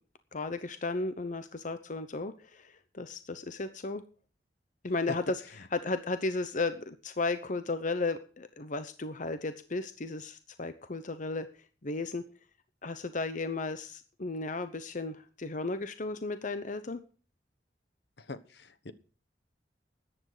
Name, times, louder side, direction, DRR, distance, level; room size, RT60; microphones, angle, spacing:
voice 1, 0.3-4.0 4.8-11.5 11.8-12.2 12.8-17.0, left 3 dB, 45° left, 11 dB, 0.9 m, -34 dB
voice 2, 18.3-18.9, left 3 dB, 65° left, 13 dB, 1.2 m, -44 dB
14.0 x 10.0 x 5.0 m, 0.39 s
head